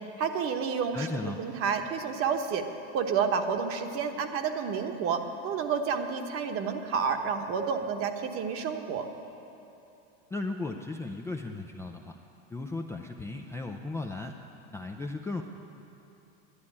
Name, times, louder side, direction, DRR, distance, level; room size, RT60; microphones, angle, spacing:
voice 1, 0.2-1.1 1.4-2.7 2.9-9.1, right 6 dB, 40° right, 6 dB, 1.1 m, -30 dB
voice 2, 0.9-1.4 10.3-12.2 12.5-14.4 14.7-15.4, left 2 dB, 10° left, 2 dB, 0.4 m, -36 dB
11.5 x 9.5 x 8.6 m, 2.8 s
supercardioid pair, 125°, 33 cm